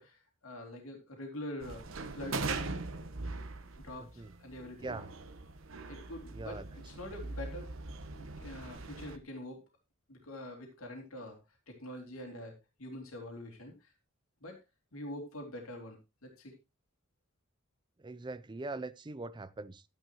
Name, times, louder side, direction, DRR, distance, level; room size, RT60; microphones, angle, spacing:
voice 1, 0.0-2.6 3.8-4.9 5.9-7.7 8.1-9.6 10.1-12.5 12.8-13.9 14.4-14.6 14.9-16.6, left 1 dB, 90° left, 2.8 m, -45 dB
sound 1, 1.6-9.2, right 3 dB, 70° right, 1.1 m, -41 dB
voice 2, 4.0-4.3 4.8-5.1 6.3-6.7 18.0-19.8, right 2 dB, 20° right, 0.5 m, -42 dB
12.0 x 10.0 x 3.0 m
head